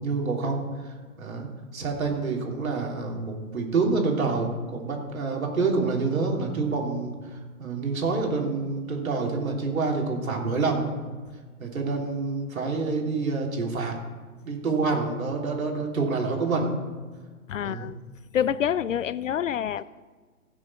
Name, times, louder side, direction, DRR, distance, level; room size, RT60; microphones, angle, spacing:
voice 1, 0.0-10.9 11.6-13.9 14.4-16.7 17.6-17.9, right 4 dB, 70° right, 0 dB, 3.4 m, -27 dB
voice 2, 17.5-18.0 18.3-19.8, left 9 dB, 60° left, 19 dB, 0.6 m, -27 dB
15.5 x 6.4 x 5.7 m, 1.5 s
figure-of-eight pair, 130°, 43 cm